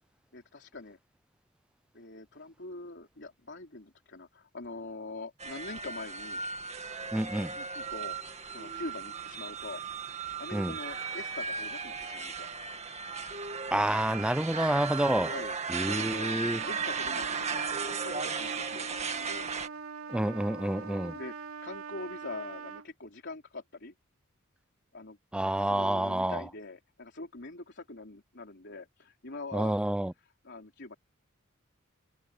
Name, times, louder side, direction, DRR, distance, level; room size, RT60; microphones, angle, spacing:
voice 1, 0.3-1.0 1.9-6.4 7.6-9.8 10.4-12.5 15.2-19.5 20.7-23.9 24.9-25.2 25.6-29.8 30.2-31.0, left 2 dB, 55° left, 3.8 m, -44 dB
sound 1, 5.4-19.7, right 5 dB, 30° right, 1.9 m, -36 dB
voice 2, 7.1-7.5 10.5-10.7 13.7-15.3 15.7-16.6 20.1-21.1 25.3-26.4 29.5-30.1, right 1 dB, 5° right, 0.3 m, -28 dB
Trumpet, 15.7-22.9, right 5 dB, 85° right, 0.9 m, -43 dB
head